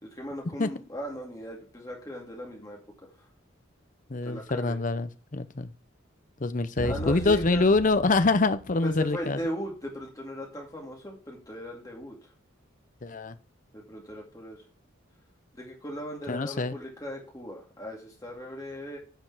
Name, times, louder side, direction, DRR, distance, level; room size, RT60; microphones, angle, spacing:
voice 1, 0.0-2.8 3.2-3.3 4.2-4.8 6.8-7.6 8.8-12.2 13.7-14.6 15.5-19.0, equal, 15° left, -1 dB, 2.2 m, -38 dB
voice 2, 4.1-5.7 6.4-9.4 13.0-13.4 16.3-16.8, left 3 dB, 40° left, 12 dB, 0.7 m, -25 dB
sound 1, 6.8-9.5, right 1 dB, 80° left, 2.0 m, -39 dB
9.1 x 5.2 x 6.1 m, 0.36 s
head